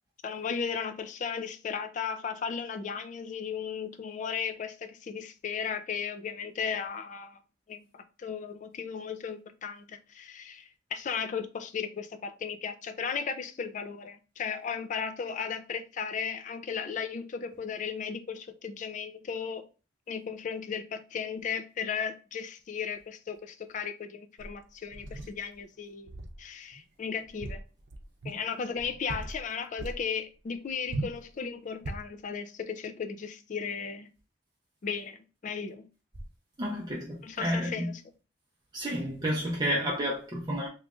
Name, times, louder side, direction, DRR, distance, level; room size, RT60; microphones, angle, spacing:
voice 1, 0.2-7.4 7.7-19.6 20.1-27.6 28.2-34.1 34.8-35.9 37.2-38.0, left 6 dB, 40° left, 0.3 m, -35 dB
sound 1, 24.4-25.4 26.1-26.4 26.7-26.8 27.3-28.4 28.8-29.5 29.8-30.0 30.9-31.2 31.8-32.2, right 2 dB, 75° right, 0.6 m, -38 dB
voice 2, 36.6-37.9 38.7-40.7, equal, 25° right, 0.6 m, -31 dB
3.0 x 2.4 x 3.5 m
head